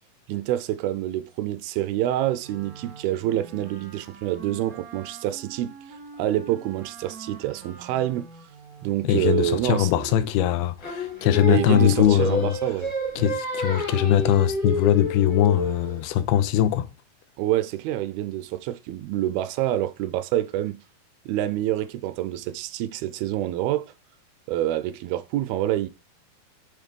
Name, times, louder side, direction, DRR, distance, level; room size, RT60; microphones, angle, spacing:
voice 1, 0.3-8.3 8.8-9.9 11.5-12.9 17.4-20.8 21.3-23.9 24.5-25.9, right 13 dB, 80° right, 2.3 m, -27 dB
Wind instrument woodwind instrument, 2.4-9.1, right 5 dB, 55° right, 0.9 m, -45 dB
voice 2, 9.0-12.6 13.2-16.9, left 11 dB, 80° left, 2.5 m, -21 dB
Singing, 10.8-16.0, left 1 dB, 25° left, 0.8 m, -29 dB
7.1 x 3.8 x 5.2 m
omnidirectional pair, 4.5 m